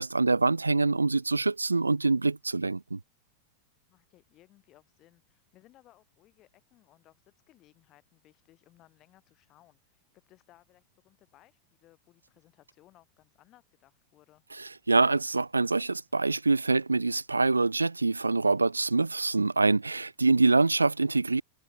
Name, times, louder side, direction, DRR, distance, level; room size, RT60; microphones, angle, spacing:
voice 1, 0.0-3.0 14.6-21.4, right 3 dB, 80° right, 0.3 m, -25 dB
voice 2, 3.9-14.4, left 15 dB, 35° left, 7.8 m, -62 dB
figure-of-eight pair, 90°, 0 cm